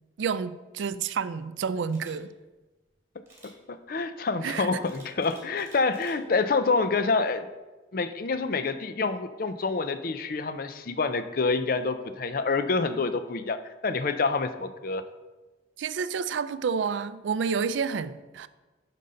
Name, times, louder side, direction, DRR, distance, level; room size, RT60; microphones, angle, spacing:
voice 1, 0.2-2.3 4.4-4.8 15.8-18.5, right 6 dB, 80° right, 0.4 m, -29 dB
Camera, 1.9-2.1 3.3-3.5 4.8-6.2 6.7-6.9, right 2 dB, 15° right, 2.1 m, -53 dB
voice 2, 3.7-7.5 7.9-15.0, left 4 dB, 50° left, 0.5 m, -27 dB
9.4 x 5.4 x 3.8 m
head